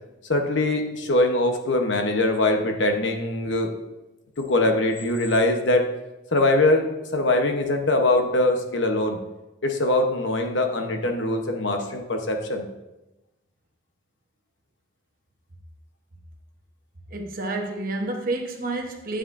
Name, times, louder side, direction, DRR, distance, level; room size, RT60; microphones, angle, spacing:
voice 1, 0.3-3.7 4.4-5.9 6.3-9.2 9.6-12.7 18.6-18.8, left 2 dB, 70° left, 4 dB, 0.9 m, -22 dB
voice 2, 17.1-19.2, right 2 dB, 45° right, 2 dB, 1.0 m, -30 dB
9.8 x 7.6 x 2.6 m, 1.0 s
head